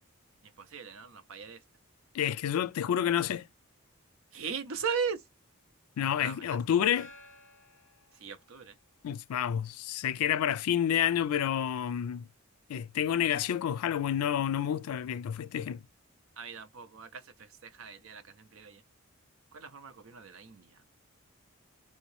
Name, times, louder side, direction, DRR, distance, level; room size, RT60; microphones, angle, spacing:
voice 1, 0.6-1.6 4.3-5.2 6.2-6.4 8.2-8.7 16.4-18.8 19.5-20.8, right 6 dB, 70° right, 0.6 m, -38 dB
voice 2, 2.1-3.4 6.0-7.1 9.0-12.3 12.7-15.8, left 9 dB, 90° left, 0.3 m, -29 dB
Gong, 7.0-9.0, left 1 dB, 65° left, 1.1 m, -55 dB
3.1 x 2.7 x 3.1 m
head